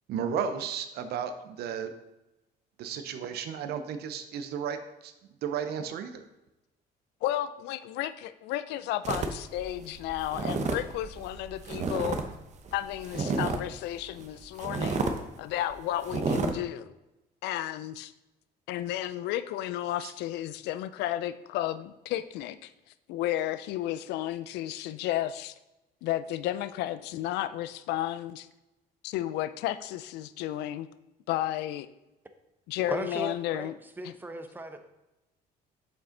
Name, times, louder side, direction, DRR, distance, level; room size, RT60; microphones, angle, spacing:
voice 1, 0.1-1.9 2.8-5.1 5.4-6.2, right 7 dB, 70° right, 9 dB, 0.7 m, -33 dB
voice 2, 7.2-8.1 8.4-12.2 12.7-15.0 15.4-16.9 17.4-18.1 18.7-22.7 23.1-25.5 26.0-28.5 29.0-30.9 31.3-31.9 32.7-33.8 34.0-34.1, left 13 dB, 85° left, 14 dB, 0.4 m, -32 dB
sound 1, 9.0-12.3 12.5-13.8 14.2-14.3 14.6-15.2 15.6-15.7 16.0-16.5, right 4 dB, 45° right, 0.8 m, -31 dB
voice 3, 32.9-34.8, right 2 dB, 10° right, 7 dB, 0.8 m, -38 dB
7.0 x 5.4 x 3.8 m, 0.95 s
cardioid pair, 110°, 17 cm